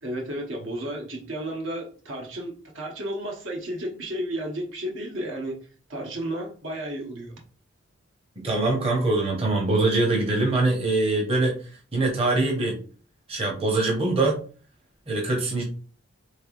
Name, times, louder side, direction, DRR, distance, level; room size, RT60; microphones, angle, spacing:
voice 1, 0.0-5.6 5.9-7.3, right 1 dB, 65° right, 0.9 m, -32 dB
voice 2, 8.4-11.6 11.9-12.8 13.3-14.4 15.1-15.6, right 2 dB, 30° right, 0.8 m, -23 dB
3.6 x 3.3 x 2.4 m
head